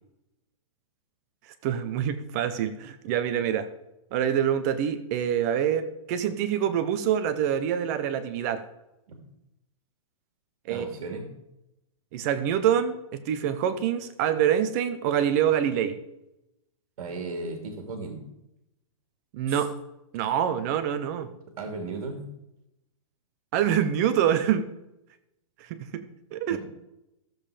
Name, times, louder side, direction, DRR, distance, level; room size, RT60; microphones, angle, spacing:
voice 1, 1.6-3.7 4.1-8.6 10.7-10.8 12.1-16.0 19.3-19.7 20.1-21.3 23.5-24.7 25.6-26.0 26.3-26.6, right 9 dB, 30° right, 11 dB, 0.7 m, -26 dB
voice 2, 10.7-11.3 17.0-18.2 19.5-19.6 21.6-22.2 26.5-26.6, right 3 dB, 65° right, 4 dB, 2.5 m, -35 dB
14.5 x 7.6 x 5.0 m, 0.88 s
hypercardioid pair, 170°, 18 cm